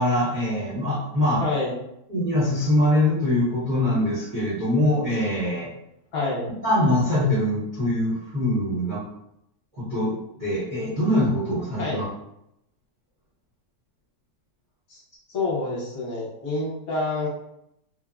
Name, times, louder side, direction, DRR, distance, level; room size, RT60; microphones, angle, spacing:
voice 1, 0.0-1.4 2.1-5.7 6.6-9.0 9.8-10.1 10.4-12.0, left 1 dB, 40° right, -8 dB, 0.7 m, -23 dB
voice 2, 1.4-1.7 6.1-6.5 11.8-12.0 14.9-15.0 15.3-17.3, left 3 dB, 65° left, -5 dB, 1.2 m, -27 dB
3.3 x 2.0 x 2.3 m, 0.81 s
omnidirectional pair, 1.9 m